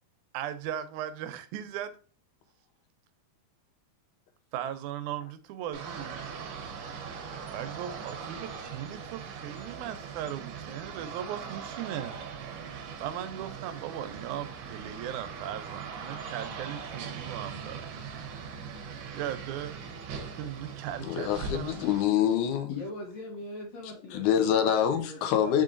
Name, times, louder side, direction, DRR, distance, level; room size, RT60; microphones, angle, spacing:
voice 1, 0.3-2.0 4.5-6.2 7.5-12.2 13.0-18.7 19.1-19.8 20.3-21.8, right 10 dB, 90° right, 2.0 m, -38 dB
sound 1, 5.7-22.0, right 6 dB, 75° right, 1.8 m, -40 dB
voice 2, 21.0-22.7 24.1-25.6, left 9 dB, 90° left, 2.1 m, -25 dB
voice 3, 22.7-25.5, left 2 dB, 65° left, 2.0 m, -41 dB
5.2 x 3.7 x 2.5 m
omnidirectional pair, 3.4 m